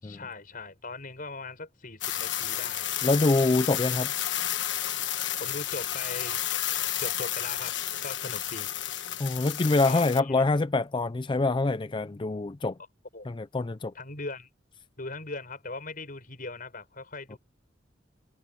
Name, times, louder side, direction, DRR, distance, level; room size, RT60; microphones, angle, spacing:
voice 1, 0.0-2.9 5.4-6.4 7.0-8.7 9.8-10.4 13.1-13.3 13.9-14.5 15.0-17.4, left 3 dB, 45° left, 6.0 m, -40 dB
sound 1, 2.0-10.2, left 12 dB, 65° left, 1.4 m, -31 dB
voice 2, 3.0-4.1 9.2-12.8 13.3-13.9 17.3-17.4, left 2 dB, 25° left, 0.4 m, -25 dB
head